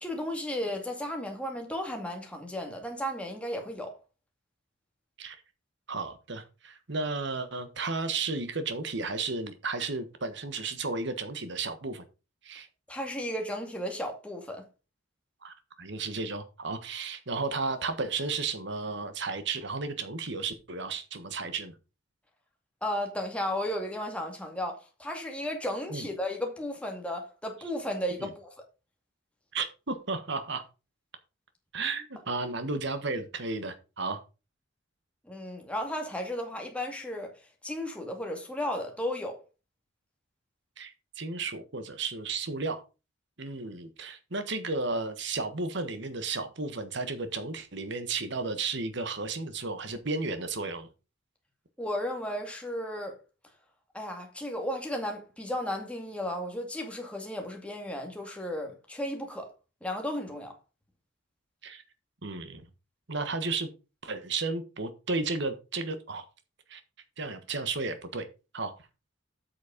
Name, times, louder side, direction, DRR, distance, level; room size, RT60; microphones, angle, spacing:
voice 1, 0.0-4.0 12.9-14.6 22.8-28.5 35.3-37.3 37.6-39.4 51.8-53.2 53.9-59.5 59.8-60.5, left 1 dB, 5° left, 2.2 m, -34 dB
voice 2, 5.9-12.0 12.4-12.7 15.4-21.7 25.9-26.1 28.2-28.3 29.5-30.6 31.7-34.2 40.8-42.8 43.4-50.9 61.6-61.8 62.2-62.6 63.1-63.7 64.0-66.2 66.7-66.8 67.2-68.3 68.5-68.7, right 3 dB, 60° right, 1.4 m, -33 dB
8.3 x 6.4 x 5.2 m
head